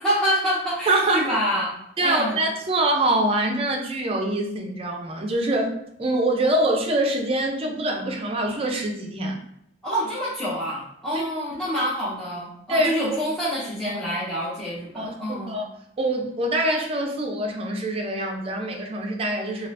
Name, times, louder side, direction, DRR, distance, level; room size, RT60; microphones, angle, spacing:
voice 1, 0.0-1.7 2.0-2.4 9.8-15.6, equal, 5° left, -11 dB, 0.7 m, -27 dB
voice 2, 0.9-1.3 2.0-9.4 11.1-11.2 12.7-13.0 13.8-14.0 14.9-15.7 16.0-19.7, right 1 dB, 30° right, 2 dB, 0.4 m, -24 dB
2.7 x 2.3 x 3.2 m, 0.77 s
head